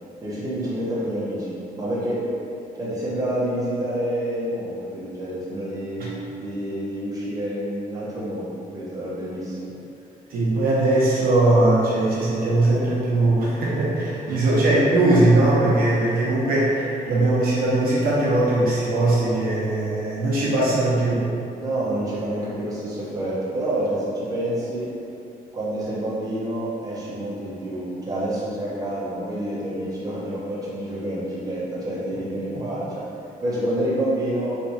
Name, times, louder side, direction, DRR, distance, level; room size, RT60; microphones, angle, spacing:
voice 1, 0.2-2.2 2.7-6.1 6.4-9.7 14.3-14.4 21.6-24.9 25.5-33.0 33.4-34.6, right 1 dB, 25° right, -9 dB, 0.9 m, -28 dB
voice 2, 10.3-21.2, right 2 dB, 80° right, -7 dB, 0.9 m, -20 dB
3.3 x 3.1 x 2.8 m, 2.7 s
cardioid pair, 130°, 15 cm